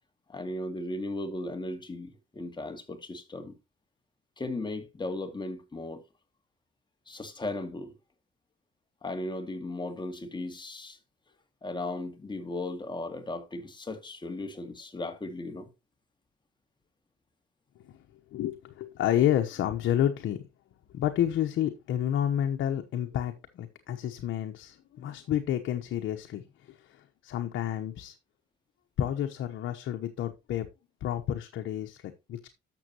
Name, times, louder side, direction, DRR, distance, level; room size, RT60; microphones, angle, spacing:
voice 1, 0.3-3.5 4.4-6.0 7.1-7.9 9.0-11.0 11.6-15.7, left 2 dB, 25° left, 2.1 m, -36 dB
voice 2, 18.3-20.5 20.9-28.1 29.0-30.7 31.0-32.5, left 11 dB, 80° left, 1.0 m, -30 dB
12.0 x 7.0 x 2.9 m
cardioid pair, 90°, 20 cm